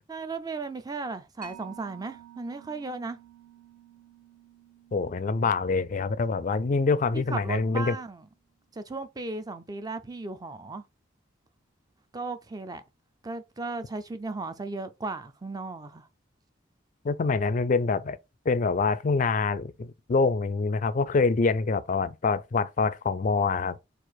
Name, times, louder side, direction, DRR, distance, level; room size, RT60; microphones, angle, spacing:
voice 1, 0.1-3.2 7.1-8.3 8.7-10.8 12.1-12.8 13.2-16.1, right 3 dB, 20° right, 0.4 m, -36 dB
Mallet percussion, 1.4-8.5, right 10 dB, 50° right, 1.1 m, -53 dB
voice 2, 4.9-8.0 17.0-18.2 18.5-23.8, left 4 dB, 40° left, 0.4 m, -25 dB
4.7 x 2.5 x 4.0 m
head